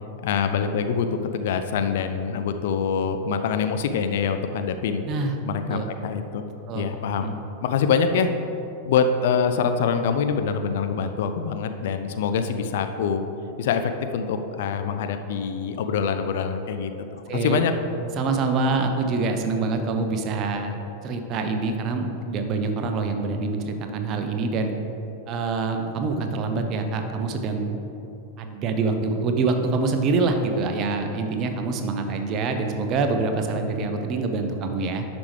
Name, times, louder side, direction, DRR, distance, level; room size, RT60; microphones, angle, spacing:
voice 1, 0.2-1.1 1.3-5.0 5.4-6.4 6.7-7.3 7.6-8.3 8.8-13.3 13.6-17.7, left 6 dB, 55° left, 8 dB, 0.4 m, -25 dB
voice 2, 17.3-17.6 18.2-20.8 21.0-24.7 25.3-27.8 28.4-35.1, right 3 dB, 35° right, 5 dB, 0.7 m, -25 dB
11.0 x 5.1 x 3.3 m, 2.9 s
figure-of-eight pair, 90°, 0 cm